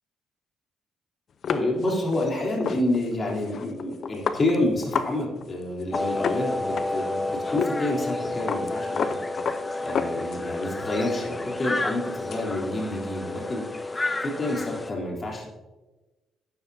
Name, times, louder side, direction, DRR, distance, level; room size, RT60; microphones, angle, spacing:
sound 1, 1.4-5.1 5.4-5.5 5.8-7.2 7.6-7.7 8.0-10.6 11.0-12.4, left 6 dB, 55° left, 0.7 m, -31 dB
voice 1, 1.5-9.2 9.8-13.6 14.2-15.6, left 1 dB, 35° left, -2 dB, 3.6 m, -28 dB
sound 2, 5.9-14.9, left 2 dB, 20° left, 0.7 m, -30 dB
13.0 x 9.2 x 2.8 m, 1.1 s
cardioid pair, 90°, 0 cm